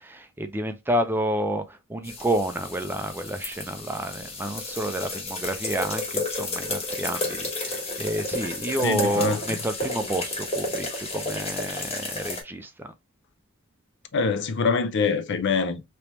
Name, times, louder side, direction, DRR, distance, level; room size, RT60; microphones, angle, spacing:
voice 1, 0.0-12.9, right 1 dB, 10° right, 0.4 m, -29 dB
sound 1, 2.0-12.4, left 2 dB, 30° left, 1.1 m, -32 dB
voice 2, 8.8-9.6 14.1-15.8, left 4 dB, 55° left, 0.5 m, -24 dB
3.3 x 3.0 x 2.9 m
head